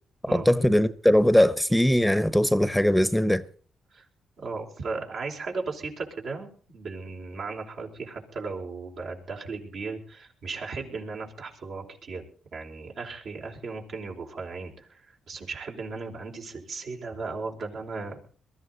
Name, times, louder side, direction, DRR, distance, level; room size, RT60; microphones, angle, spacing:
voice 1, 0.3-3.4, left 1 dB, 5° left, 0.9 m, -20 dB
voice 2, 4.4-6.5 6.7-12.3 12.5-18.2, right 4 dB, 70° right, 4.8 m, -36 dB
22.5 x 13.5 x 4.0 m
supercardioid pair, 60°, 0 cm